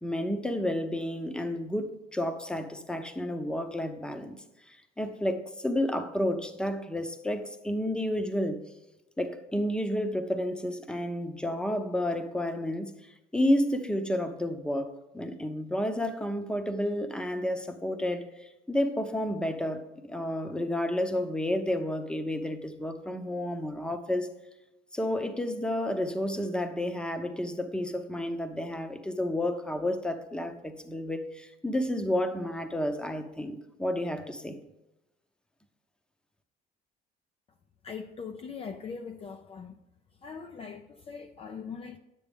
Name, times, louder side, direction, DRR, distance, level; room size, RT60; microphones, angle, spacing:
voice 1, 0.0-4.4 4.7-8.6 9.2-24.3 24.9-34.6, left 1 dB, 5° left, 0.8 m, -31 dB
voice 2, 37.8-39.8 40.2-42.0, left 5 dB, 35° left, 0.5 m, -41 dB
10.0 x 8.4 x 3.6 m
cardioid pair, 110°, 17 cm